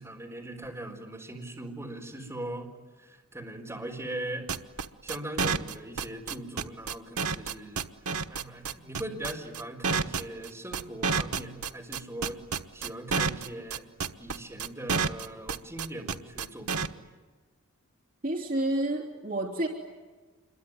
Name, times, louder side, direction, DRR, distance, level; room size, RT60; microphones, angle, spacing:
voice 1, 0.0-2.7 3.0-4.5 5.0-7.8 8.3-12.4 12.7-13.9 14.2-17.0, right 1 dB, 10° right, 0 dB, 4.4 m, -40 dB
sound 1, 4.5-16.9, right 5 dB, 80° right, 1.2 m, -29 dB
voice 2, 18.2-19.7, right 1 dB, 40° right, 1 dB, 2.9 m, -29 dB
26.5 x 22.5 x 9.7 m, 1.3 s
head